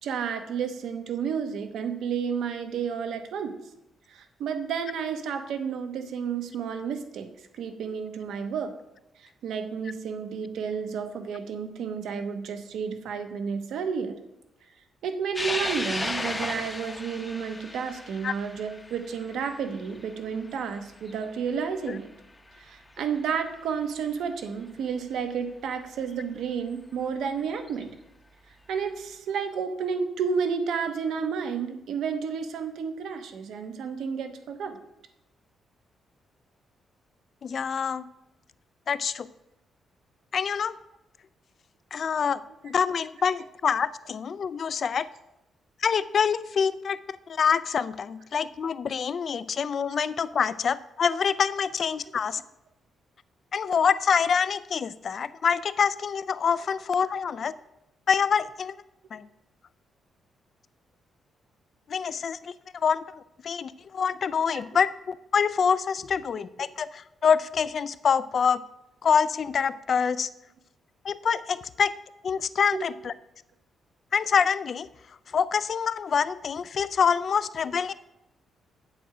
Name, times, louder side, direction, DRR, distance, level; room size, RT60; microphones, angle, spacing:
voice 1, 0.0-3.5 4.1-7.3 7.5-8.7 9.4-14.2 15.0-22.1 22.6-27.9 28.7-34.8 64.5-64.6 72.7-72.8, right 6 dB, 80° right, 7 dB, 1.0 m, -31 dB
sound 1, 15.3-22.0 22.5-22.6 23.8-23.9 26.1-26.2 27.6-27.8, left 2 dB, 15° left, 0.7 m, -35 dB
voice 2, 37.4-38.1 38.9-39.3 40.3-40.7 41.9-45.1 45.8-52.4 53.5-57.5 58.1-58.8 59.1-59.3 61.9-63.0 63.4-68.6 69.0-70.3 71.0-71.9 72.2-73.1 74.1-74.9 75.3-77.9, left 6 dB, 45° left, 16 dB, 0.3 m, -26 dB
7.8 x 7.6 x 4.9 m, 0.88 s
cardioid pair, 150°, 0 cm